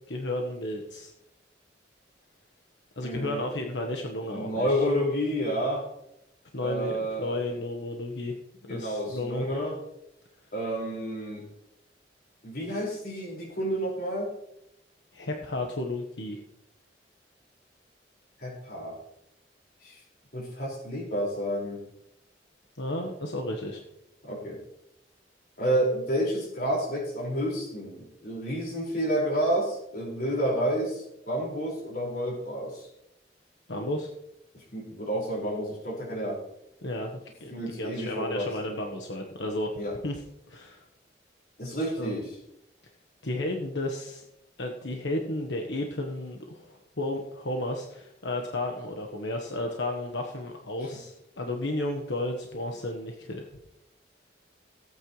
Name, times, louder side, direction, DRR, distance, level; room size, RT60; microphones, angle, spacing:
voice 1, 0.1-1.1 3.0-4.8 6.5-8.3 8.7-9.5 15.1-16.4 22.8-23.8 33.7-34.1 36.8-37.1 37.4-37.5 37.8-39.7 40.0-40.2 40.5-40.8 42.0-42.1 43.2-44.2 44.6-53.5, left 1 dB, 85° left, 2 dB, 1.3 m, -33 dB
voice 2, 3.0-3.5 4.2-5.9 6.6-7.4 8.6-9.8 10.5-11.5 12.4-14.3 18.4-19.0 19.8-20.0 20.3-21.8 24.2-24.6 25.6-32.9 34.5-36.4 37.5-38.5 39.8-40.0 41.6-42.4, equal, 55° left, -3 dB, 5.2 m, -30 dB
17.5 x 9.0 x 3.2 m, 0.81 s
head